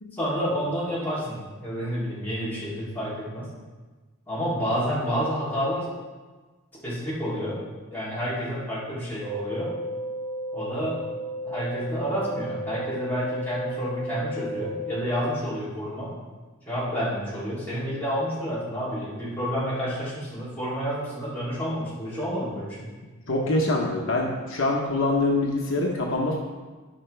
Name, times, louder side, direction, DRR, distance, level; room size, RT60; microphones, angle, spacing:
voice 1, 0.1-3.5 4.3-5.9 6.8-7.6 7.9-9.7 10.5-11.0 11.4-16.1 16.6-22.8, equal, 10° left, -11 dB, 3.1 m, -29 dB
sound 1, 9.2-15.0, right 1 dB, 35° right, 2.1 m, -33 dB
voice 2, 23.3-26.4, left 2 dB, 70° left, -1 dB, 1.0 m, -24 dB
13.0 x 5.5 x 3.4 m, 1.3 s
head